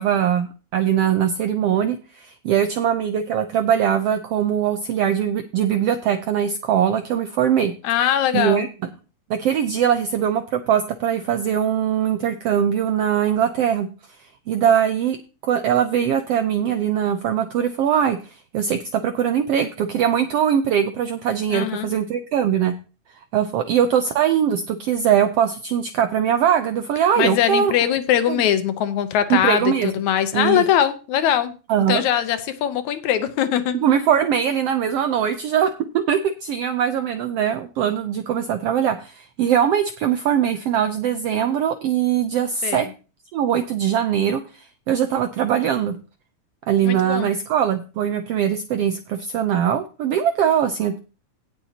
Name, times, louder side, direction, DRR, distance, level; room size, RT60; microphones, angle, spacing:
voice 1, 0.0-7.7 8.3-8.7 9.3-13.9 14.5-15.2 15.4-22.7 23.3-27.7 28.3-28.4 29.3-29.9 30.3-30.6 31.7-32.0 33.7-42.9 43.3-46.0 46.7-51.0, right 9 dB, 80° right, 8 dB, 1.4 m, -21 dB
voice 2, 7.8-8.6 21.5-21.9 27.2-31.5 31.9-33.8 42.6-42.9 46.8-47.3, left 10 dB, 75° left, 11 dB, 2.1 m, -21 dB
17.5 x 6.9 x 2.9 m, 0.33 s
omnidirectional pair, 3.6 m